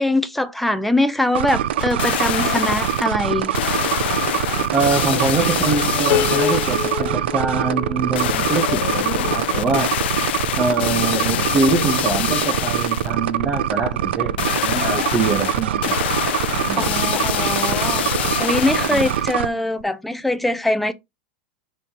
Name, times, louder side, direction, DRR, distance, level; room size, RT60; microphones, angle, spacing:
voice 1, 0.0-3.5 16.8-18.1 18.4-20.9, left 1 dB, ahead, 0.6 m, -22 dB
sound 1, 1.4-19.5, right 11 dB, 85° right, 0.5 m, -23 dB
sound 2, 1.8-3.1 3.5-7.1 8.1-13.1 14.4-19.3 19.8-19.9, left 13 dB, 80° left, 0.4 m, -25 dB
voice 2, 4.7-10.1 10.6-16.0 16.7-16.9 18.9-19.1, right 4 dB, 20° right, 1.1 m, -24 dB
Piano, 6.1-9.3, left 11 dB, 40° left, 1.1 m, -27 dB
5.3 x 4.2 x 4.2 m
supercardioid pair, 150°, 6 cm